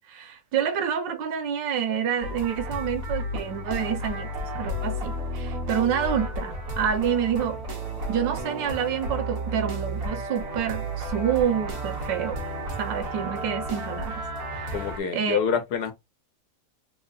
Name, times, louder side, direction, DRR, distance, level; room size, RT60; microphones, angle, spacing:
voice 1, 0.1-4.3 4.5-7.6 8.1-12.4 12.8-14.2 14.5-14.8 15.1-15.4, right 8 dB, 80° right, 1.4 m, -28 dB
sound 1, 2.2-15.0, right 1 dB, 50° right, 1.6 m, -32 dB
voice 2, 14.7-15.9, left 6 dB, 70° left, 1.3 m, -26 dB
3.5 x 2.1 x 3.9 m
omnidirectional pair, 1.9 m